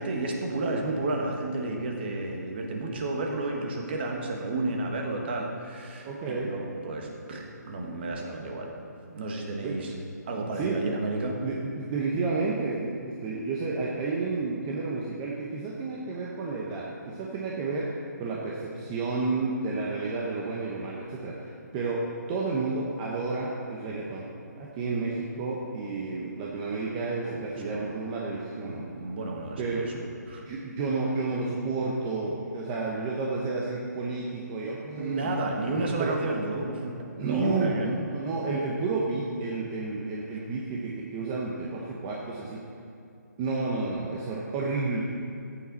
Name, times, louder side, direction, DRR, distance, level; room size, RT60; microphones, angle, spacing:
voice 1, 0.0-8.7 9.1-9.9 10.2-11.4 27.2-27.9 28.6-30.4 35.0-37.9, right 2 dB, 35° right, 1 dB, 1.6 m, -32 dB
voice 2, 6.0-6.5 9.6-9.8 10.6-10.8 11.4-17.8 18.2-22.0 22.3-24.3 24.6-28.9 29.6-30.0 30.4-35.3 36.0-36.1 37.2-42.6 43.4-45.0, right 3 dB, 15° right, -3 dB, 0.8 m, -31 dB
14.0 x 8.9 x 4.1 m, 2.7 s
hypercardioid pair, 165°, 10 cm